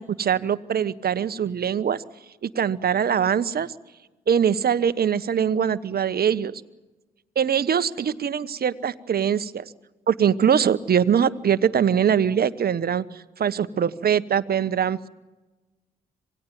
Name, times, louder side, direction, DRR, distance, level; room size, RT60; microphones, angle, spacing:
voice 1, 0.0-2.0 2.4-3.7 4.3-6.6 7.4-9.6 10.1-15.1, right 8 dB, 55° right, 15 dB, 1.2 m, -22 dB
27.0 x 19.0 x 9.3 m, 1.2 s
hypercardioid pair, 45°, 19 cm